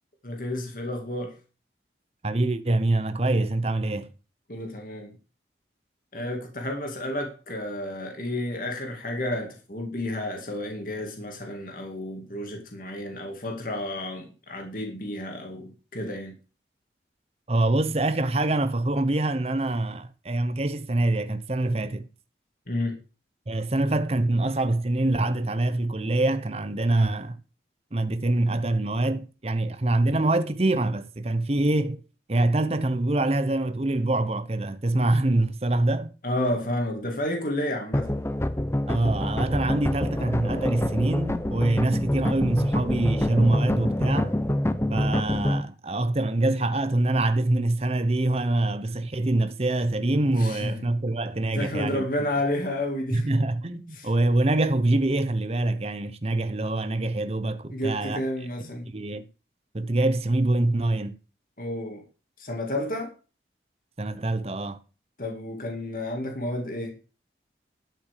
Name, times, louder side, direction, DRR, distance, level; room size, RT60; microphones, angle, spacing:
voice 1, 0.2-1.3 4.5-5.1 6.1-16.4 22.7-23.0 36.2-38.1 50.4-50.8 51.5-53.4 53.9-54.1 57.7-58.9 61.6-62.0 62.4-63.1 65.2-66.9, left 1 dB, 50° left, 2.4 m, -31 dB
voice 2, 2.2-4.1 17.5-22.1 23.5-27.4 27.9-32.0 32.3-36.1 38.9-44.4 44.9-52.1 53.1-58.2 58.9-59.3 59.7-61.2 64.0-64.8, right 2 dB, 35° right, 0.8 m, -25 dB
sound 1, 37.9-45.6, left 1 dB, 15° left, 0.6 m, -26 dB
12.0 x 6.0 x 6.7 m
head